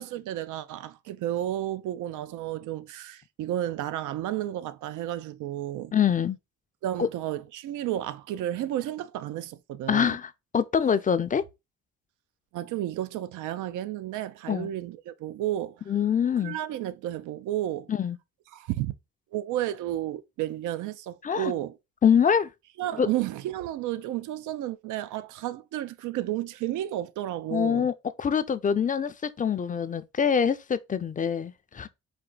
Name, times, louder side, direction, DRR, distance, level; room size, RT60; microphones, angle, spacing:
voice 1, 0.0-5.9 6.8-10.2 12.5-15.8 16.4-17.9 18.5-18.9 19.3-21.8 22.8-27.9, right 13 dB, 80° right, 0.5 m, -32 dB
voice 2, 5.9-6.4 7.0-7.1 9.9-11.4 14.5-14.7 15.9-16.6 17.9-18.2 21.2-21.5 22.0-22.5 23.0-23.1 27.5-31.9, left 7 dB, 25° left, 0.4 m, -25 dB
4.3 x 2.6 x 3.8 m
cardioid pair, 90°, 30 cm